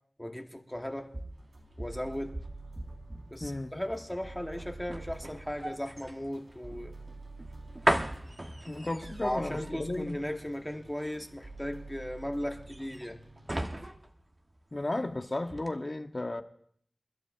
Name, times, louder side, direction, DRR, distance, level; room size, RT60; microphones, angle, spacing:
voice 1, 0.2-1.1 1.8-2.4 3.3-6.9 9.2-13.2, left 1 dB, 10° left, 1.2 m, -37 dB
sound 1, 0.7-15.1 15.5-15.7, right 1 dB, 30° right, 1.1 m, -38 dB
sound 2, 1.3-13.9, right 3 dB, 55° right, 4.3 m, -49 dB
voice 2, 3.4-3.7 8.7-10.2 14.7-16.4, left 2 dB, 40° left, 0.9 m, -34 dB
28.5 x 12.0 x 2.5 m
wide cardioid pair, 60°, 0 cm